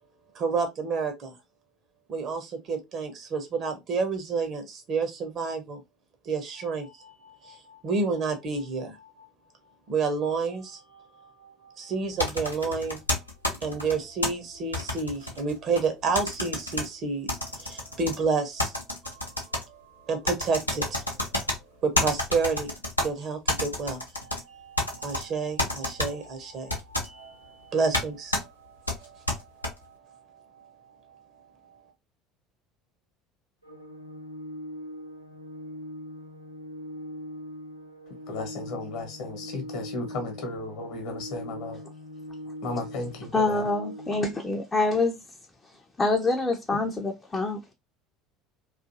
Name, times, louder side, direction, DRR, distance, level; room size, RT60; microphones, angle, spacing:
voice 1, 0.3-1.4 2.1-5.8 6.2-9.2 9.9-13.0 13.6-18.7 19.0-21.0 21.8-22.7 23.0-31.8, right 4 dB, 40° right, 0.7 m, -31 dB
sound 1, 12.2-14.3 14.7-15.9 16.2-16.9 17.3-18.2 18.6-19.6 20.3-21.6 22.0-23.1 23.5-24.4 24.8-25.2 25.6-26.1 26.7-27.1 27.9-28.0 28.3-28.4 28.9-29.7, left 1 dB, 90° left, 0.6 m, -28 dB
Organ, 33.6-44.6, equal, 90° right, 0.4 m, -41 dB
voice 2, 38.3-41.8 42.6-43.6, left 2 dB, 55° left, 1.0 m, -34 dB
voice 3, 43.3-45.2 45.6-47.7, left 2 dB, 15° left, 0.5 m, -26 dB
2.6 x 2.4 x 2.6 m
figure-of-eight pair, 65°, 0 cm